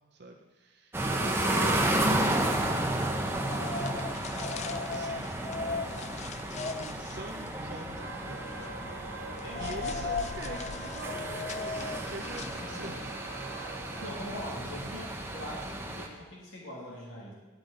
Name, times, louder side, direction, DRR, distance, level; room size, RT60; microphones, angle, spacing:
voice 1, 0.1-4.2 4.9-5.4 6.8-8.6 9.6-13.0, right 2 dB, 50° right, 2 dB, 0.7 m, -44 dB
sound 1, 0.9-16.1, right 1 dB, 10° right, 0.8 m, -33 dB
sound 2, 3.2-13.1, left 4 dB, 35° left, 0.3 m, -38 dB
Wind instrument woodwind instrument, 8.0-14.1, right 4 dB, 80° right, 1.0 m, -45 dB
voice 2, 9.3-9.8 12.6-13.0 14.0-17.3, equal, 70° left, -4 dB, 2.2 m, -43 dB
10.5 x 9.6 x 3.9 m, 1.2 s
head